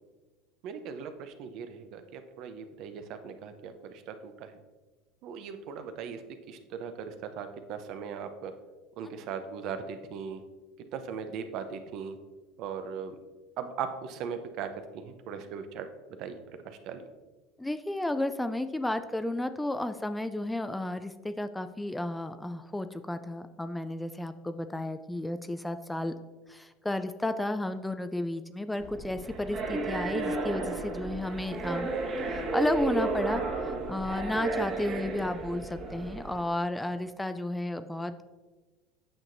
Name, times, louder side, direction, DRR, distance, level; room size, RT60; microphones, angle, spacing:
voice 1, 0.6-4.5 5.2-6.2 6.5-8.5 9.0-10.4 10.9-12.2 12.6-13.2 13.6-14.7 14.9-15.9 16.2-17.0, right 7 dB, 60° right, 8 dB, 0.7 m, -39 dB
voice 2, 17.6-26.1 26.5-31.9 32.3-38.2, left 1 dB, 10° left, 10 dB, 0.3 m, -32 dB
sound 1, 28.8-36.4, right 3 dB, 40° right, 1.5 m, -33 dB
8.9 x 5.9 x 2.6 m, 1.2 s
supercardioid pair, 100°, 0 cm